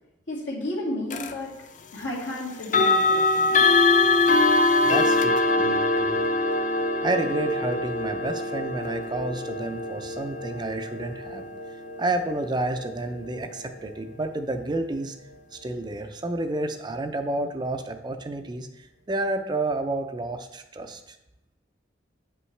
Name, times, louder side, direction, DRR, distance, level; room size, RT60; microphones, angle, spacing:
voice 1, 0.3-1.5 1.9-3.8, left 1 dB, 80° left, -5 dB, 2.2 m, -33 dB
sound 1, 1.1-1.3 2.6-13.5, left 3 dB, 40° left, 0.4 m, -23 dB
voice 2, 4.8-6.3 7.0-11.5 12.0-15.2 15.5-21.2, right 2 dB, 25° right, 6 dB, 0.4 m, -30 dB
8.3 x 5.4 x 3.3 m, 0.88 s
head